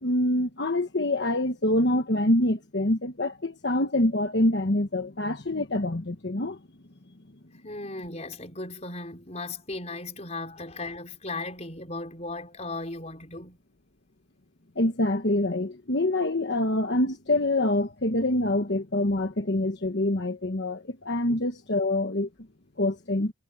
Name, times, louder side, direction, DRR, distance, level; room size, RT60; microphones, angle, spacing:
voice 1, 0.0-6.6 14.7-22.3 22.8-23.3, left 1 dB, 55° left, 1.3 m, -25 dB
voice 2, 7.6-13.6 21.3-21.4, left 2 dB, 35° left, 4.9 m, -36 dB
head